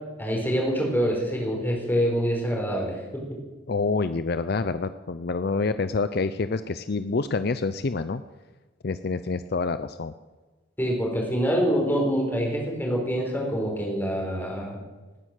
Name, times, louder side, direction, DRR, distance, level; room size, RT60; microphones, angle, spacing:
voice 1, 0.2-2.9 10.8-14.8, equal, 10° left, -1 dB, 4.0 m, -25 dB
voice 2, 3.7-8.2 8.8-10.1, left 4 dB, 50° left, 12 dB, 0.5 m, -27 dB
19.0 x 9.8 x 6.6 m, 1.2 s
head